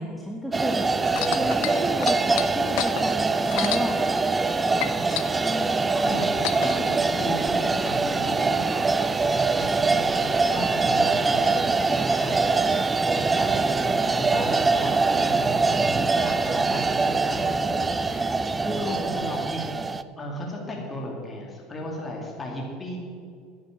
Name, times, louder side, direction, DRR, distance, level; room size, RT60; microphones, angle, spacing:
voice 1, 0.0-4.0 5.3-5.9 18.6-19.2, equal, 5° left, 0 dB, 1.3 m, -32 dB
sound 1, 0.5-20.0, right 3 dB, 20° right, 0.5 m, -23 dB
sound 2, 1.1-4.5 4.8-6.8 7.6-7.7, left 15 dB, 75° left, 0.7 m, -31 dB
voice 2, 1.1-1.4 5.5-6.3 6.6-9.0 9.5-12.6 13.1-18.4 18.7-19.7 20.2-23.0, left 1 dB, 20° left, -1 dB, 2.5 m, -36 dB
10.0 x 9.6 x 7.2 m, 2.3 s
supercardioid pair, 110°, 0 cm